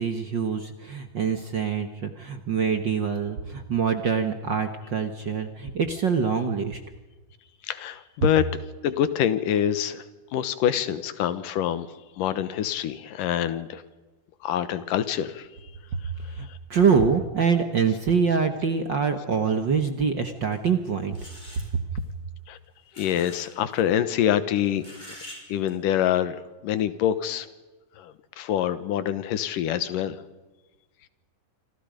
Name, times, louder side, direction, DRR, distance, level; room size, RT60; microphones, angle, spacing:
voice 1, 0.0-6.8 16.3-21.2, right 6 dB, 55° right, 8 dB, 1.4 m, -25 dB
voice 2, 7.6-8.4 8.8-10.0 10.3-11.9 12.2-13.8 14.4-15.7 16.5-16.6 22.5-22.6 23.0-24.9 25.5-27.5 28.0-30.2, left 10 dB, 90° left, 13 dB, 2.8 m, -26 dB
sound 1, 20.5-20.6 21.1-21.7 22.9-23.5 23.7-23.8 24.8-25.4 25.7-25.8, left 1 dB, 10° left, 6.1 m, -44 dB
27.0 x 26.5 x 5.2 m, 1.2 s
omnidirectional pair, 3.7 m